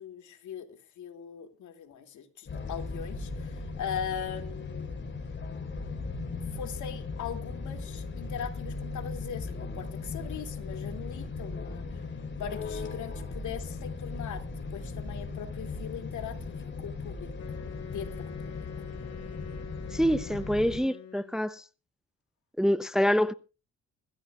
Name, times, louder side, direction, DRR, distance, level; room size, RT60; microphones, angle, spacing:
voice 1, 0.0-5.0 6.5-12.1 12.4-14.4 14.7-17.3 17.9-18.7, left 8 dB, 75° left, 2.7 m, -40 dB
sound 1, 2.5-20.8, left 3 dB, 40° left, 4.8 m, -37 dB
Wind instrument woodwind instrument, 17.3-21.5, left 8 dB, 55° left, 2.4 m, -45 dB
voice 2, 19.9-21.6 22.6-23.3, equal, ahead, 0.7 m, -26 dB
24.0 x 14.5 x 2.4 m
cardioid pair, 90°, 30 cm